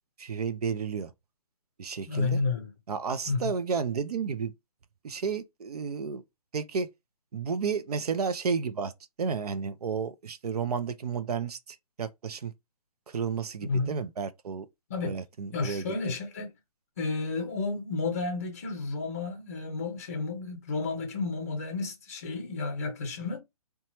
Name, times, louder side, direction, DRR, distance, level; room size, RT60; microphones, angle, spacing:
voice 1, 0.2-1.1 1.8-2.4 2.9-4.5 5.0-6.2 6.5-6.9 7.3-8.9 9.2-12.5 13.1-14.7 15.0-15.9, right 6 dB, 85° right, 0.5 m, -32 dB
voice 2, 2.1-2.7 3.3-3.4 13.6-14.0 14.9-15.2 15.5-16.5 17.0-23.4, left 3 dB, 25° left, 0.5 m, -31 dB
2.9 x 2.2 x 2.8 m
hypercardioid pair, 170°, 19 cm